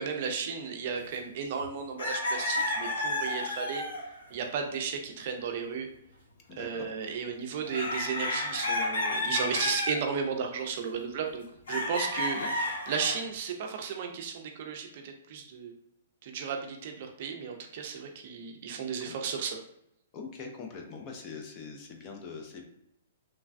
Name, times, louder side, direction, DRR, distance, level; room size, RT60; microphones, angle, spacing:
voice 1, 0.0-3.8 4.3-5.9 6.5-12.4 12.9-15.7 16.2-19.6, right 6 dB, 45° right, 3 dB, 0.4 m, -34 dB
sound 1, 1.6-1.7 2.0-4.2 7.6-10.0 11.7-13.2, left 2 dB, 80° left, 0.9 m, -31 dB
voice 2, 6.5-6.9 12.3-12.5 19.0-19.3 20.1-22.6, left 5 dB, 25° left, 3 dB, 0.4 m, -43 dB
3.1 x 2.2 x 2.5 m, 0.75 s
hypercardioid pair, 160°, 0 cm